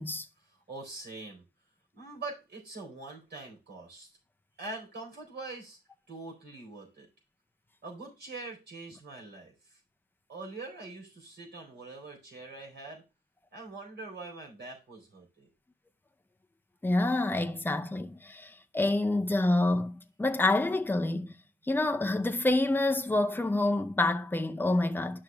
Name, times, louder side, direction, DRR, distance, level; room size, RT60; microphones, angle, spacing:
voice 1, 0.5-1.5 1.9-4.1 4.6-5.8 6.1-7.1 7.8-9.8 10.3-13.0 13.5-15.5, right 3 dB, 65° right, 4.1 m, -43 dB
voice 2, 16.8-21.3 21.7-25.2, left 2 dB, 10° left, 0.5 m, -27 dB
12.0 x 6.0 x 2.3 m
wide cardioid pair, 165°, 19 cm